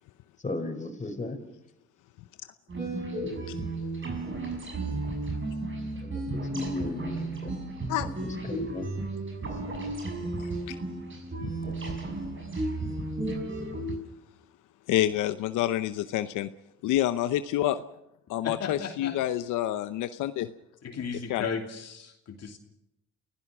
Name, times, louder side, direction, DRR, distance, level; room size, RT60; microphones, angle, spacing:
voice 1, 0.4-1.4 6.0-7.6 8.0-8.9, left 2 dB, 25° left, 5 dB, 5.2 m, -35 dB
sound 1, 2.7-13.9, right 2 dB, 40° right, 6.2 m, -33 dB
voice 2, 14.9-16.5 16.8-17.8 18.3-20.5 21.3-21.4, left 13 dB, 90° left, 11 dB, 0.8 m, -27 dB
voice 3, 18.4-19.1 20.8-22.6, left 6 dB, 55° left, 3 dB, 2.8 m, -35 dB
30.0 x 16.0 x 6.1 m, 0.84 s
cardioid pair, 90°, 30 cm